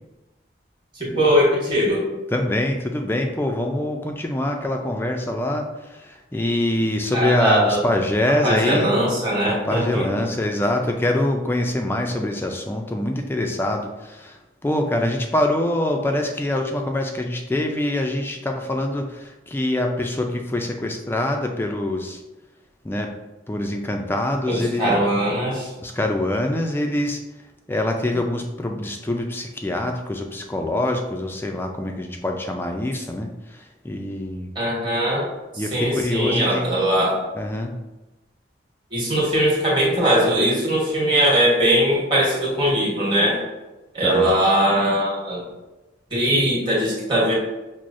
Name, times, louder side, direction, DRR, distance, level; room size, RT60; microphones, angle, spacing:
voice 1, 0.9-2.1 7.1-7.8 8.4-10.2 24.5-25.7 34.5-35.3 35.5-37.2 38.9-43.4 43.9-45.4 46.1-47.3, equal, 25° right, -5 dB, 1.2 m, -20 dB
voice 2, 2.3-5.7 5.9-8.9 9.4-14.4 14.6-22.2 22.8-23.1 23.5-25.0 25.8-27.2 27.7-34.5 35.6-36.7 37.3-37.7 44.0-44.3, left 1 dB, 10° left, 3 dB, 0.3 m, -24 dB
6.0 x 2.0 x 2.5 m, 1.1 s
head